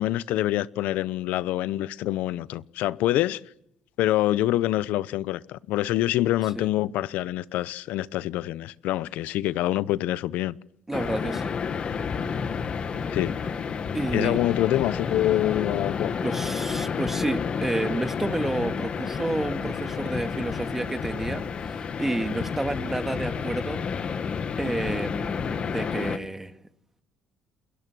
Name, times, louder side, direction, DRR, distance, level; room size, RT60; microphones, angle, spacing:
voice 1, 0.0-3.4 4.0-10.6 13.1-13.4 14.1-16.2, left 14 dB, 80° left, 0.8 m, -26 dB
sound 1, 10.9-26.2, left 6 dB, 45° left, 1.8 m, -30 dB
voice 2, 10.9-11.5 13.9-14.4 16.2-23.8 24.6-26.5, right 2 dB, 10° right, 2.0 m, -30 dB
28.5 x 22.0 x 6.3 m
cardioid pair, 100°, 3 cm